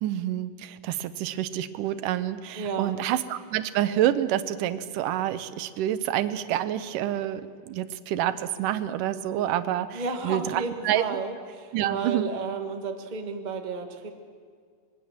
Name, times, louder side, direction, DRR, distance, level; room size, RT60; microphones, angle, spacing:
voice 1, 0.0-11.0 11.7-12.3, right 12 dB, 75° right, 12 dB, 2.4 m, -28 dB
voice 2, 2.5-3.0 9.9-14.1, right 4 dB, 50° right, 4 dB, 0.5 m, -32 dB
25.5 x 21.0 x 7.4 m, 2.1 s
omnidirectional pair, 3.9 m